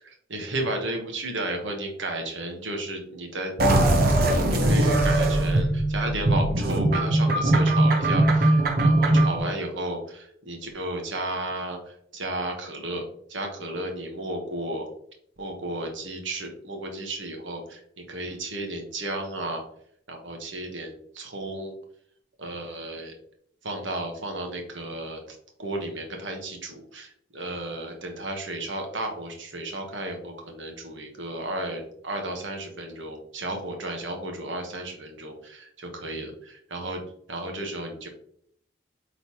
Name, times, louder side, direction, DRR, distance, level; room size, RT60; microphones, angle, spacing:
voice 1, 0.0-3.5 4.1-13.0 13.3-14.9 15.4-19.6 20.1-21.7 22.4-23.1 23.6-25.2 25.6-37.0 37.3-38.1, right 1 dB, 70° right, 3 dB, 1.3 m, -33 dB
sound 1, 3.6-9.4, right 1 dB, 45° right, 0.9 m, -20 dB
8.2 x 4.0 x 3.0 m, 0.66 s
head